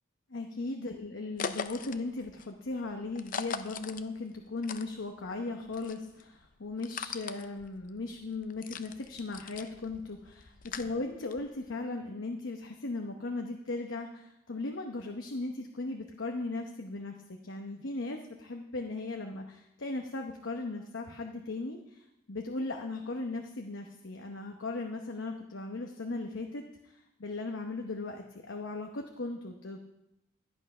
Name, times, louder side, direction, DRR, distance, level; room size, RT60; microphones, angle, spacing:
voice 1, 0.3-29.8, left 3 dB, 65° left, 3 dB, 0.9 m, -37 dB
sound 1, 1.4-5.4 5.6-11.6, left 6 dB, 40° left, 0.6 m, -41 dB
12.5 x 8.6 x 5.5 m, 0.89 s
head